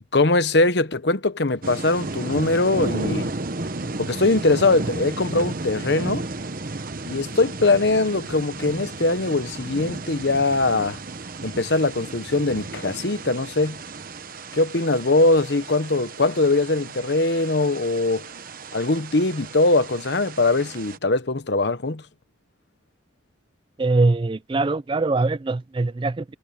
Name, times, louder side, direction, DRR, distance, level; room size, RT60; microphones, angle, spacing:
voice 1, 0.1-3.3 4.0-6.2 7.0-11.0 11.4-13.8 14.5-18.3 18.7-22.0, left 2 dB, 60° left, 1.0 m, -21 dB
sound 1, 1.6-21.0, right 2 dB, 45° right, 1.1 m, -34 dB
voice 2, 23.8-26.3, right 3 dB, 25° right, 0.3 m, -22 dB
head